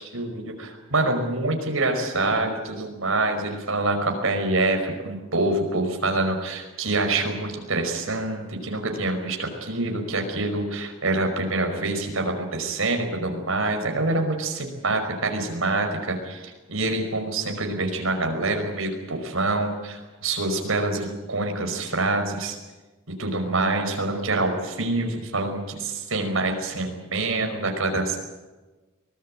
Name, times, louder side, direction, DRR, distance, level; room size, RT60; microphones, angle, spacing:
voice 1, 0.0-22.6 23.2-28.2, right 2 dB, 90° right, 4 dB, 5.3 m, -26 dB
24.0 x 19.0 x 8.7 m, 1.2 s
head